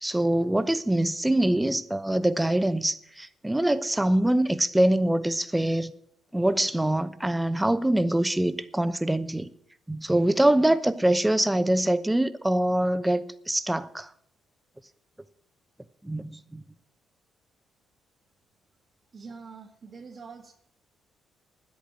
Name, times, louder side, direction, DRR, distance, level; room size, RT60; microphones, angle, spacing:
voice 1, 0.0-5.9 6.3-9.5 9.9-14.1 16.0-16.6, right 1 dB, 10° right, 0.8 m, -24 dB
voice 2, 19.1-20.5, right 5 dB, 45° right, 1.6 m, -44 dB
10.0 x 8.5 x 8.9 m
cardioid pair, 90°, 0 cm